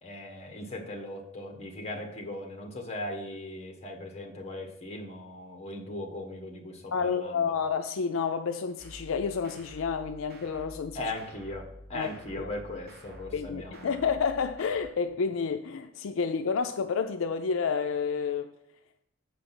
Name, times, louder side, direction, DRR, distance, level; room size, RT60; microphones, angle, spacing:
voice 1, 0.0-7.4 10.9-14.0, left 1 dB, 30° left, 1.5 m, -39 dB
voice 2, 6.9-11.1 11.9-12.1 12.3-12.5 13.3-18.5, left 5 dB, 75° left, 0.4 m, -30 dB
sound 1, 8.8-14.9, equal, 55° right, 1.1 m, -49 dB
7.1 x 5.1 x 6.0 m
head